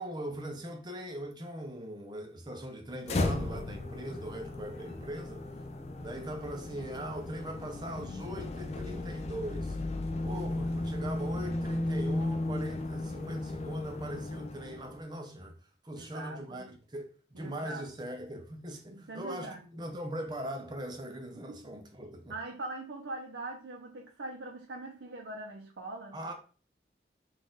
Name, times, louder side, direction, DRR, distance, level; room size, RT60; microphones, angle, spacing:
voice 1, 0.0-5.5 6.0-9.8 10.2-15.6 15.8-22.3 26.1-26.3, equal, 25° right, 0.6 m, -40 dB
sound 1, 3.0-15.0, left 2 dB, 35° left, 0.4 m, -35 dB
voice 2, 15.9-16.7 17.3-17.8 18.9-19.7 21.5-21.6 22.3-26.2, right 2 dB, 90° right, 0.7 m, -42 dB
4.0 x 2.5 x 3.8 m
head